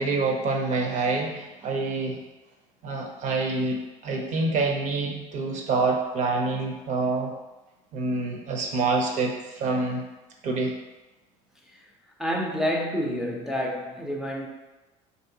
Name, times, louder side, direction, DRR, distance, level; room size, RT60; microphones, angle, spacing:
voice 1, 0.0-2.2 2.8-7.3 7.9-10.0 10.4-10.7, right 3 dB, 45° right, 1 dB, 0.6 m, -26 dB
voice 2, 12.2-14.5, equal, 5° right, -2 dB, 0.5 m, -28 dB
3.1 x 2.7 x 2.7 m, 1.1 s
supercardioid pair, 100°, 17 cm